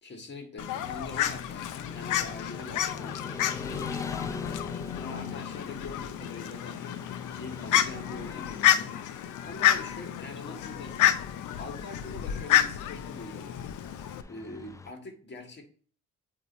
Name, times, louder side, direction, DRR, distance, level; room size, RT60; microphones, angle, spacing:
voice 1, 0.0-7.1 7.3-11.2 11.6-13.5 14.3-15.6, left 2 dB, 35° left, 1.7 m, -44 dB
Fowl, 0.6-14.2, left 11 dB, 80° left, 0.6 m, -29 dB
Motorcycle / Traffic noise roadway noise, 1.8-14.9, left 3 dB, 10° left, 0.3 m, -45 dB
8.4 x 2.8 x 4.1 m
cardioid pair, 90°, 30 cm